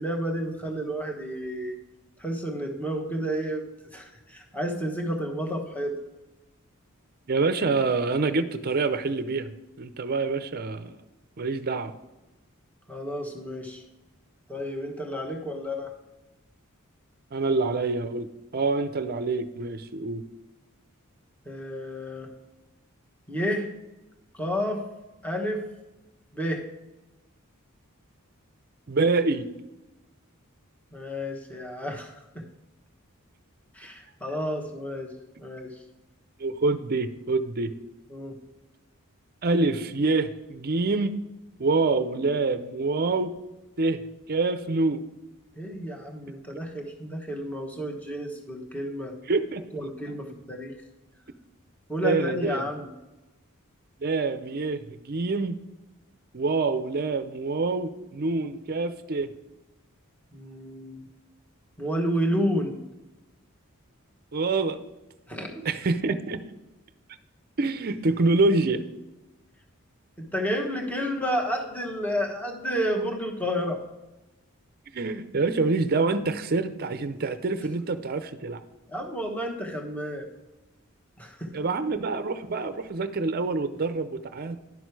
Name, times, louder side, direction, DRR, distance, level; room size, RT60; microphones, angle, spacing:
voice 1, 0.0-1.8 2.2-3.6 3.9-5.9 12.9-13.8 14.5-15.9 21.5-22.3 23.3-23.7 24.3-24.8 25.2-25.6 26.3-26.6 30.9-32.1 33.7-35.1 35.4-35.7 38.1-38.3 45.6-49.1 49.7-50.7 51.9-52.9 60.3-61.0 61.8-62.8 65.3-65.5 70.2-73.8 78.9-80.3 81.2-81.6, equal, 5° left, 1 dB, 1.2 m, -30 dB
voice 2, 7.3-9.5 9.8-11.0 11.4-11.9 17.3-18.3 18.5-20.2 28.9-29.5 36.4-37.7 39.4-41.1 41.6-43.3 43.8-44.0 44.3-45.0 49.3-49.6 52.0-52.6 54.0-55.6 56.3-59.3 64.3-64.8 65.6-66.4 67.6-68.8 74.9-78.6 81.5-84.6, right 3 dB, 45° right, 11 dB, 0.6 m, -26 dB
11.0 x 6.4 x 4.7 m, 1.0 s
head